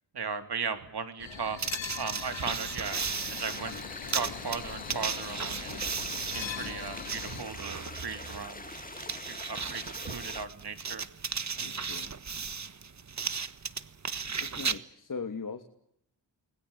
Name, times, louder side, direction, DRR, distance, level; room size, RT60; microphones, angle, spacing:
voice 1, 0.1-1.6 2.0-3.8 4.1-5.7 6.2-8.6 9.3-11.1 11.6-11.8, right 5 dB, 60° right, 8 dB, 3.6 m, -37 dB
sound 1, 1.2-7.4, left 8 dB, 75° left, 2.5 m, -42 dB
sound 2, 1.6-14.8, right 5 dB, 40° right, 1.5 m, -36 dB
sound 3, 2.9-10.5, left 2 dB, 20° left, 2.3 m, -44 dB
voice 2, 6.4-6.8 11.6-12.1 14.4-15.6, left 4 dB, 45° left, 6 dB, 2.8 m, -40 dB
29.5 x 21.0 x 7.4 m, 0.71 s
cardioid pair, 65°, 44 cm